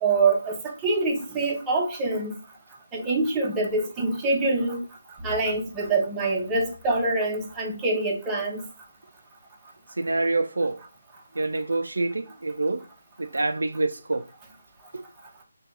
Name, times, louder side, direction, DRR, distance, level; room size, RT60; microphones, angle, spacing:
voice 1, 0.0-2.3 2.9-4.8 5.2-8.6, right 3 dB, 10° right, 0.6 m, -25 dB
voice 2, 9.9-10.8 11.3-12.9 13.2-14.3 14.9-15.0, right 2 dB, 85° right, 0.3 m, -26 dB
3.2 x 2.2 x 3.6 m
figure-of-eight pair, 170°, 0 cm